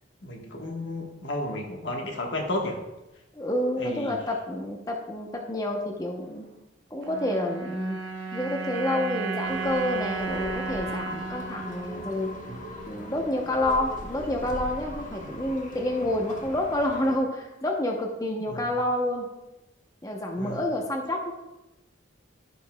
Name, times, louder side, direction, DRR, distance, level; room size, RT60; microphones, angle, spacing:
voice 1, 0.2-2.8 3.8-4.2 15.2-15.4 18.4-18.7 20.3-20.7, left 1 dB, 70° left, 1 dB, 1.3 m, -33 dB
voice 2, 3.3-6.5 6.9-8.0 8.3-12.3 12.9-19.3 20.0-21.3, left 1 dB, 20° left, 1 dB, 0.7 m, -28 dB
sound 1, 7.0-13.4, right 5 dB, 70° right, 0.8 m, -34 dB
sound 2, 9.4-17.2, left 1 dB, 45° left, 1.2 m, -40 dB
15.0 x 5.4 x 2.2 m, 0.99 s
head